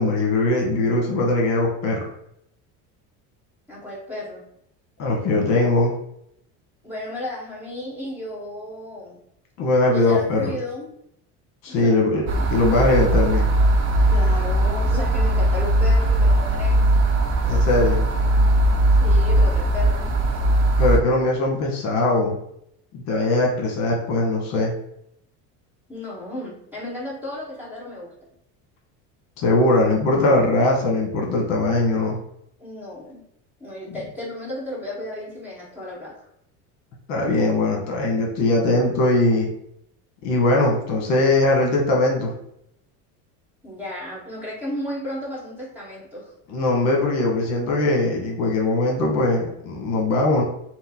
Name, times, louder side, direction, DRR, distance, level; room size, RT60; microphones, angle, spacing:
voice 1, 0.0-2.0 5.0-5.9 9.6-10.5 11.6-12.2 12.5-13.5 17.5-18.0 20.8-22.4 22.9-24.7 29.4-32.2 33.9-34.0 37.1-39.5 40.2-42.3 46.5-50.4, left 2 dB, 50° left, 0 dB, 1.1 m, -20 dB
voice 2, 3.7-4.4 6.8-9.2 9.9-10.9 11.7-12.4 14.1-16.8 19.0-20.1 25.9-28.1 32.6-33.2 33.6-36.3 43.6-46.3, left 1 dB, 5° right, -6 dB, 1.2 m, -33 dB
sound 1, 12.3-21.0, right 1 dB, 35° right, 0.5 m, -19 dB
4.7 x 2.0 x 4.1 m, 0.74 s
cardioid pair, 180°, 34 cm